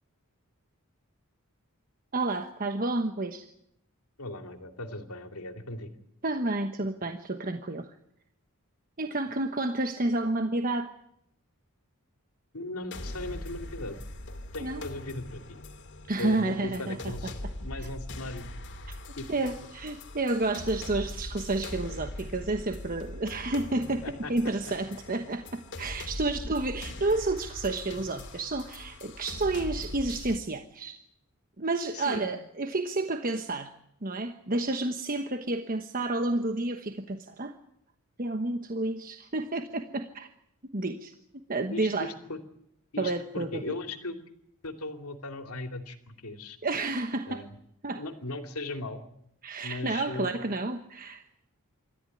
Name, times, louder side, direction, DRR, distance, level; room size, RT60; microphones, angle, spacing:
voice 1, 2.1-3.5 6.2-8.0 9.0-10.9 14.6-14.8 16.1-17.0 17.8-17.9 19.3-24.0 24.3-31.0 31.6-33.7 34.0-37.5 38.2-40.3 40.7-41.1 41.5-42.1 43.0-43.8 46.6-47.4 47.8-48.0 49.4-51.2, right 2 dB, 40° right, 7 dB, 1.2 m, -30 dB
voice 2, 4.2-5.9 12.5-14.0 14.5-15.6 16.2-18.5 19.2-19.5 24.0-24.5 31.9-32.3 41.7-42.4 42.9-44.2 44.6-46.6 47.3-47.5 47.9-49.0 49.6-50.3, left 2 dB, 80° left, 7 dB, 2.7 m, -38 dB
sound 1, 12.9-30.4, left 1 dB, 55° left, 2.5 m, -41 dB
26.5 x 14.0 x 9.9 m, 0.77 s
head